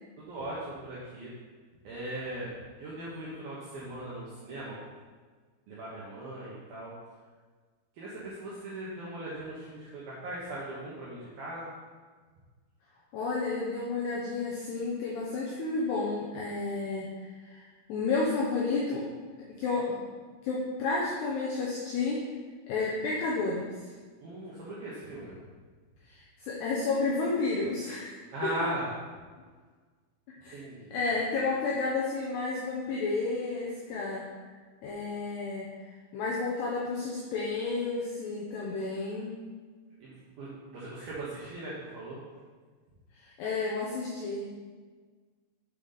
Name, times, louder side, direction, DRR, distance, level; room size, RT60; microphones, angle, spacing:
voice 1, 0.2-1.3 1.8-4.8 5.7-6.9 8.0-11.7 24.2-25.3 28.3-28.8 30.5-31.0 40.0-42.2, right 1 dB, 75° right, -7 dB, 2.2 m, -39 dB
voice 2, 13.1-17.1 17.4-19.0 19.5-20.0 20.4-22.2 22.7-23.7 26.1-28.5 30.4-30.6 30.9-34.3 34.8-35.9 36.1-39.4 43.1-44.5, left 3 dB, 80° left, -4 dB, 2.4 m, -31 dB
8.2 x 6.6 x 4.0 m, 1.5 s
omnidirectional pair, 6.0 m